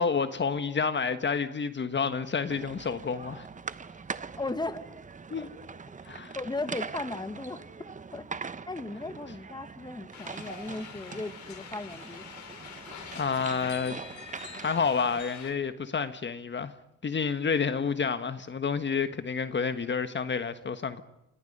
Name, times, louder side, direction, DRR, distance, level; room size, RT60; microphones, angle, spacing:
voice 1, 0.0-3.5 5.3-5.5 6.1-6.4 13.1-14.0 14.5-16.7 17.0-21.0, left 5 dB, 40° left, 1.4 m, -29 dB
sound 1, 2.5-15.2, right 5 dB, 25° right, 1.0 m, -42 dB
voice 2, 4.4-4.8 6.4-8.3 8.7-12.3, left 2 dB, 15° left, 1.9 m, -36 dB
sound 2, 10.1-15.5, left 6 dB, 70° left, 5.4 m, -45 dB
29.0 x 26.0 x 5.5 m
cardioid pair, 90°, 30 cm